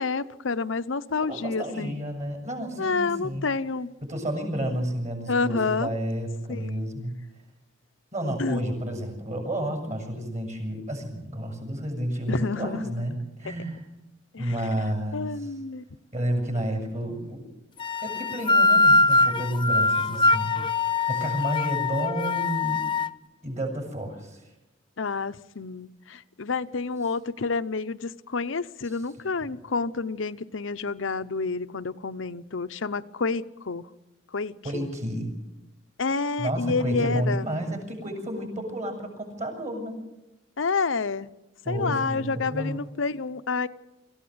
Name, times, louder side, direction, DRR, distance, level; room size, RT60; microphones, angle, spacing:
voice 1, 0.0-2.0 2.8-3.9 5.3-5.9 6.5-6.9 8.4-8.6 12.3-13.1 13.4-13.5 14.3-14.5 15.1-15.8 25.0-33.9 34.3-34.9 36.0-37.4 40.6-41.3 41.7-43.7, left 4 dB, 75° left, 0.8 m, -29 dB
voice 2, 1.2-3.5 4.0-7.1 8.1-13.8 14.4-15.5 16.1-17.5 18.0-20.6 21.1-22.8 23.4-24.4 28.9-29.0 34.6-35.3 36.4-40.0 41.6-42.8, right 1 dB, 40° right, 7.0 m, -31 dB
sound 1, 17.8-23.1, left 3 dB, 25° left, 0.7 m, -22 dB
25.5 x 15.5 x 8.0 m
head